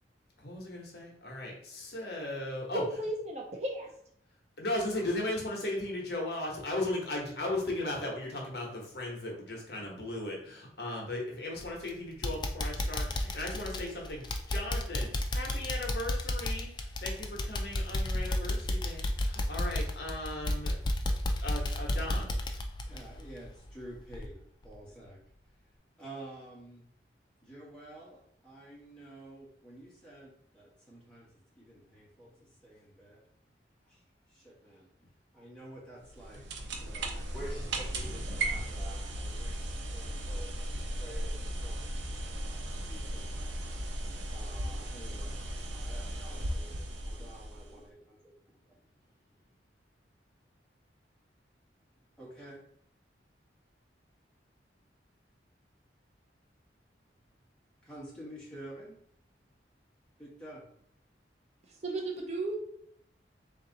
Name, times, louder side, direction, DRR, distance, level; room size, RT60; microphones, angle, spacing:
voice 1, 0.4-2.8 4.6-20.7 21.4-22.3, left 1 dB, 60° left, -1 dB, 1.1 m, -37 dB
voice 2, 2.7-3.9 61.7-62.6, right 2 dB, 35° right, 0 dB, 0.6 m, -34 dB
sound 1, 11.6-11.9 12.2-23.8 24.1-24.3 24.7-24.8, left 1 dB, 25° left, 0.4 m, -32 dB
voice 3, 22.9-24.3 24.6-25.2 26.0-26.9 27.4-31.3 31.5-33.2 33.8-34.0 34.3-36.4 36.7-41.8 42.4-42.6 42.9-43.5 44.3-45.4 45.7-48.7 52.2-52.6 57.8-59.0 60.2-60.6, right 1 dB, 5° left, -7 dB, 1.5 m, -49 dB
sound 2, 36.0-47.8, right 1 dB, 80° right, 0.7 m, -36 dB
3.6 x 2.9 x 3.9 m, 0.68 s
head